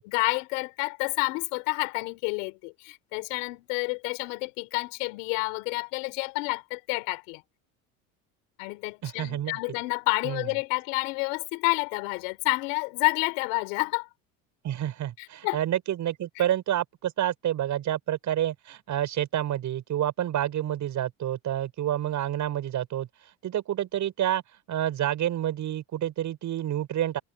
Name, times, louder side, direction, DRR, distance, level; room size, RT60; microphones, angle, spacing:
voice 1, 0.0-7.4 8.6-14.1 15.2-15.6 16.4-16.5, left 31 dB, 80° left, 4.7 m, -29 dB
voice 2, 9.0-9.6 10.2-10.5 14.6-23.1 23.4-24.4 24.7-27.2, right 11 dB, 50° right, 7.9 m, -28 dB
supercardioid pair, 95°, 38 cm